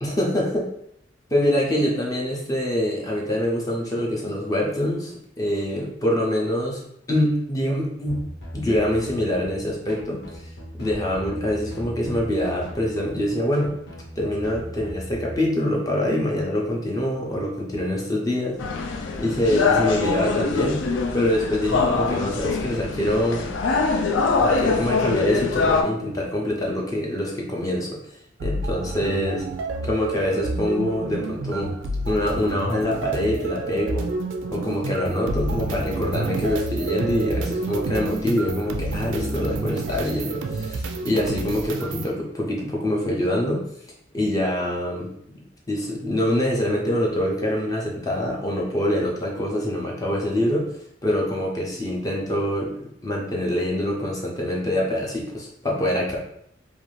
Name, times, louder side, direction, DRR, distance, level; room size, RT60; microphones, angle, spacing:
voice 1, 0.0-0.7 1.3-6.8 7.1-8.2 8.5-10.4 10.7-13.7 14.2-18.6 19.2-20.8 21.1-23.5 24.4-28.0 28.4-29.4 29.8-31.7 32.1-34.1 34.5-43.6 44.1-50.7 51.0-52.7 53.0-56.2, left 1 dB, 20° left, -2 dB, 0.4 m, -25 dB
sound 1, 8.1-15.4, equal, 65° left, 0.8 m, -38 dB
sound 2, 18.6-25.8, left 4 dB, 85° left, 0.4 m, -23 dB
sound 3, 28.4-42.1, right 3 dB, 80° right, 0.3 m, -29 dB
2.5 x 2.3 x 3.1 m, 0.71 s
head